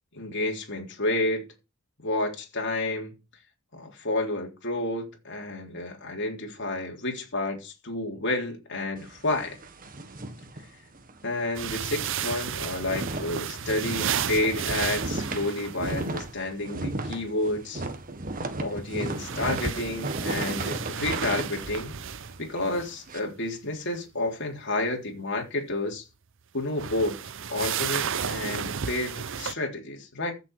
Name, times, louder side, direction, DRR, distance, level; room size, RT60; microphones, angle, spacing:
voice 1, 0.1-1.4 2.0-3.1 3.7-9.6 11.2-17.8 18.6-21.9 22.4-26.0 26.5-27.2 27.5-30.3, left 2 dB, 55° left, 3.6 m, -30 dB
sound 1, 9.0-11.2 11.6-11.7 12.0-23.2, right 2 dB, 40° right, 1.6 m, -35 dB
sound 2, 11.5-16.1 18.9-23.0 26.6-29.5, right 8 dB, 60° right, 0.8 m, -33 dB
15.0 x 7.1 x 4.9 m
head